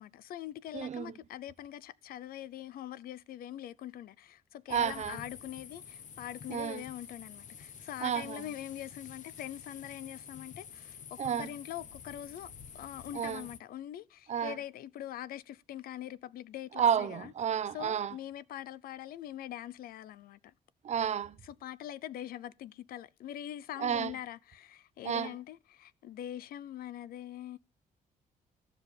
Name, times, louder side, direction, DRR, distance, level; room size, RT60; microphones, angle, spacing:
voice 1, 0.0-17.3 17.7-20.5 21.4-27.6, left 12 dB, 80° left, 0.6 m, -43 dB
voice 2, 0.7-1.2 4.7-5.2 6.5-6.8 8.0-8.5 11.2-11.5 13.1-13.5 14.3-14.6 16.7-18.2 20.8-21.4 23.8-24.1 25.0-25.3, right 8 dB, 50° right, 0.7 m, -31 dB
sound 1, 4.7-13.6, left 7 dB, 55° left, 0.9 m, -49 dB
13.5 x 5.2 x 8.2 m
cardioid pair, 115°, 15 cm